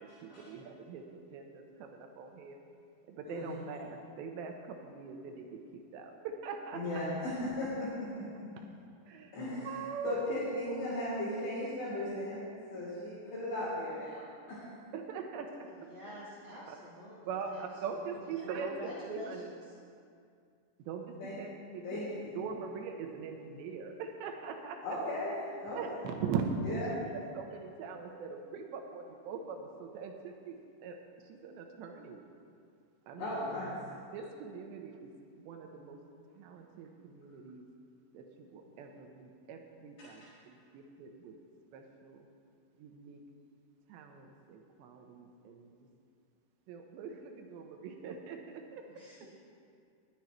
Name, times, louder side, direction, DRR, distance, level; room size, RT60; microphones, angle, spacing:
voice 1, 0.2-2.6 3.1-5.6 5.9-7.0 9.1-9.3 9.6-10.2 12.7-12.8 14.9-16.2 16.7-16.8 17.3-19.5 20.9-22.0 22.3-24.8 25.8-26.8 27.3-31.0 31.3-32.2 33.1-33.3 34.1-36.0 36.4-37.7 38.1-41.3 41.7-42.2 42.8-43.2 43.9-45.7 46.7-48.9 49.2-49.3, right 5 dB, 75° right, 3 dB, 3.0 m, -42 dB
voice 2, 3.2-3.7 6.7-8.3 9.3-14.9 21.2-21.4 21.8-22.4 24.8-25.9 26.6-27.0 33.2-33.7 40.0-40.1, left 1 dB, 70° left, -11 dB, 5.6 m, -37 dB
voice 3, 15.7-17.7 17.9-19.6 21.6-21.8 48.9-49.4, equal, 55° right, -8 dB, 1.4 m, -48 dB
20.0 x 10.5 x 3.1 m, 2.3 s
omnidirectional pair, 5.4 m